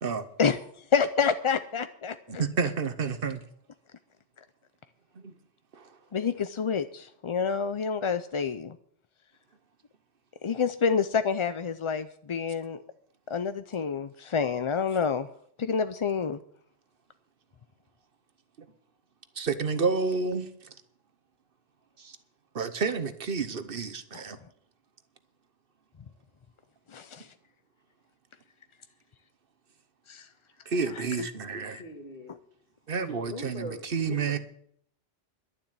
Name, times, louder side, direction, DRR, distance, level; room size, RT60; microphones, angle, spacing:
voice 1, 0.4-2.2 6.1-8.8 10.4-12.8 13.3-15.3 15.6-16.4 24.1-24.2 26.9-27.3 30.1-30.3 31.7-31.8, left 6 dB, 40° left, 0.4 m, -28 dB
voice 2, 2.3-3.4 5.1-5.3 5.7-6.0 18.6-18.7 19.3-20.8 22.0-22.2 22.5-24.4 30.6-31.8 32.9-34.4, right 5 dB, 60° right, 1.2 m, -30 dB
voice 3, 31.8-32.4 33.3-34.4, left 1 dB, 60° left, 2.2 m, -42 dB
11.5 x 7.4 x 9.6 m
omnidirectional pair, 1.1 m